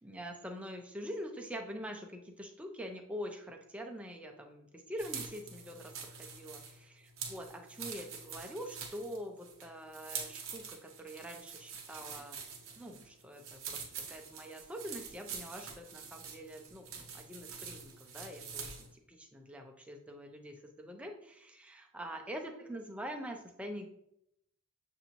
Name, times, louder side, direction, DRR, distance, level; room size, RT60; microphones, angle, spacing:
voice 1, 0.0-6.9 7.3-12.4 12.8-16.9 17.1-23.9, equal, 5° right, 3 dB, 0.5 m, -45 dB
sound 1, 5.0-18.9, right 6 dB, 60° right, 0.8 m, -46 dB
6.8 x 2.6 x 3.0 m, 0.76 s
head